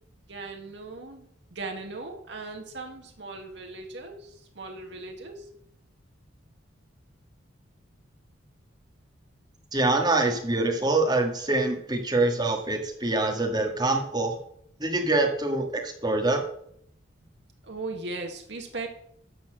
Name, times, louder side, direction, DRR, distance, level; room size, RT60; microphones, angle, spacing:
voice 1, 0.3-1.2 1.5-5.5 17.6-18.9, right 3 dB, 60° right, 3 dB, 1.9 m, -38 dB
voice 2, 9.7-14.3 14.8-16.4, right 2 dB, 20° right, 2 dB, 1.7 m, -25 dB
12.5 x 4.3 x 7.6 m, 0.68 s
head